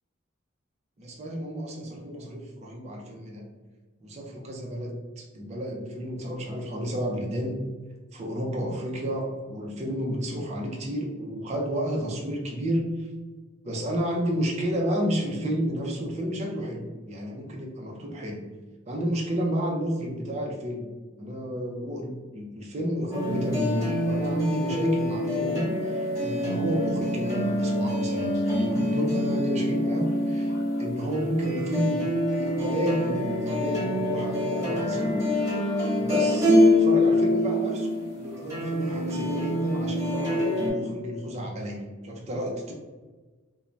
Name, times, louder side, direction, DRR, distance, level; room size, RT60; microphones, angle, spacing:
voice 1, 1.0-3.4 4.0-7.6 8.1-13.1 13.6-18.5 18.9-20.9 21.2-32.1 32.3-35.2 36.0-42.7, equal, 35° right, 0 dB, 0.4 m, -31 dB
sound 1, 23.1-40.7, left 1 dB, 15° right, 1.2 m, -25 dB
2.5 x 2.1 x 3.1 m, 1.3 s
head